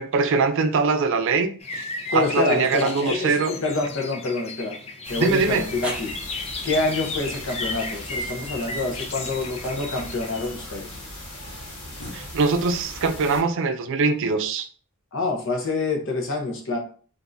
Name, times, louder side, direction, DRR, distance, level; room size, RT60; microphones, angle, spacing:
voice 1, 0.0-1.9 2.1-3.5 5.2-5.7 12.1-14.7, right 4 dB, 60° right, 0.4 m, -22 dB
sound 1, 1.6-10.5, left 3 dB, 30° left, 0.4 m, -34 dB
sound 2, 1.7-2.3 3.1-3.2 5.1-5.2 5.8-12.0, right 2 dB, 5° right, 0.7 m, -42 dB
voice 2, 2.1-4.8 5.1-6.1 6.6-10.9 15.1-16.8, left 3 dB, 65° left, 0.8 m, -26 dB
sound 3, 5.0-13.4, left 1 dB, 80° left, 1.3 m, -39 dB
3.4 x 2.6 x 2.6 m
head